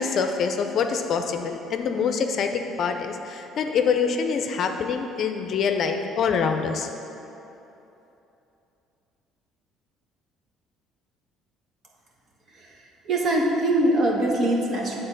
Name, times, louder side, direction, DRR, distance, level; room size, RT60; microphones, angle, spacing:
voice 1, 0.0-6.9, left 6 dB, 55° left, 5 dB, 0.5 m, -25 dB
voice 2, 12.5-15.0, right 1 dB, 45° right, -1 dB, 1.3 m, -23 dB
8.0 x 3.9 x 6.6 m, 2.9 s
cardioid pair, 105°, 0 cm